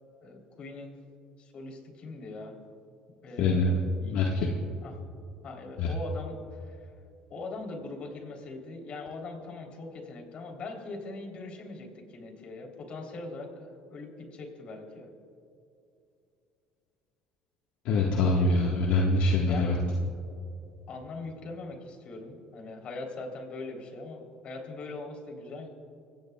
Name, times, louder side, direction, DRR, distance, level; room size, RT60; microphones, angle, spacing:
voice 1, 0.2-1.0 1.4-2.6 3.2-4.2 4.8-4.9 5.4-6.4 6.7-6.9 7.3-15.1 18.1-18.6 19.5-19.9 20.9-25.7, left 3 dB, 50° left, 2 dB, 3.6 m, -41 dB
voice 2, 3.4-4.5 5.8-5.9 17.8-19.8, left 2 dB, 70° left, -2 dB, 1.6 m, -25 dB
24.5 x 17.0 x 2.4 m, 2.6 s
supercardioid pair, 95°, 3 cm